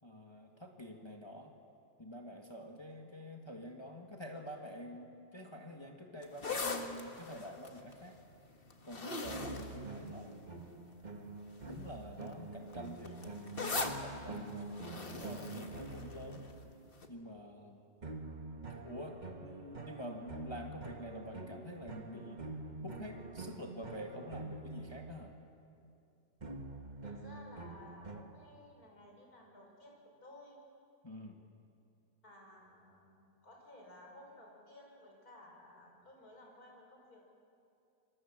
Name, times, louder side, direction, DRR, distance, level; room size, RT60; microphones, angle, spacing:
voice 1, 0.0-1.5 2.0-8.2 8.8-10.4 11.6-16.5 17.1-17.8 18.7-22.4 22.8-25.3 31.0-31.4, equal, 15° left, 1 dB, 1.8 m, -47 dB
sound 1, 6.2-10.7 11.4-11.7 12.0-16.6 17.0-17.1, left 3 dB, 35° left, 1.8 m, -41 dB
sound 2, 9.2-16.9 18.0-25.5 26.4-28.2, right 3 dB, 30° right, 1.4 m, -46 dB
voice 2, 27.0-30.6 32.2-37.2, left 1 dB, 65° left, -1 dB, 6.2 m, -56 dB
27.0 x 23.0 x 7.5 m, 2.5 s
omnidirectional pair, 1.7 m